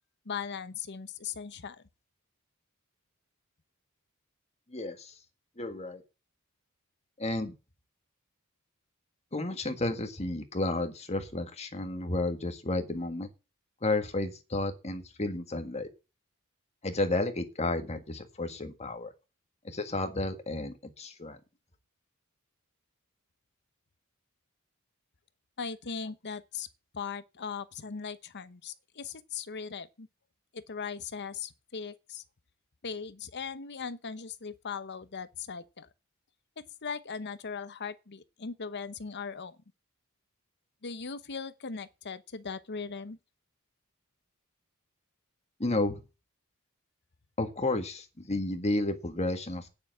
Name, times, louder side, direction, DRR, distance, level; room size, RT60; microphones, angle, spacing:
voice 1, 0.2-1.8 25.6-26.7 26.9-30.1 30.5-32.2 32.8-35.9 36.6-39.6 40.8-43.2, left 5 dB, 50° left, 0.9 m, -39 dB
voice 2, 4.7-5.1 5.6-6.0 7.2-7.5 9.3-13.3 13.8-15.9 16.8-19.1 19.6-21.4 45.6-46.0 47.4-49.7, left 2 dB, 30° left, 1.7 m, -32 dB
9.5 x 6.9 x 7.9 m
head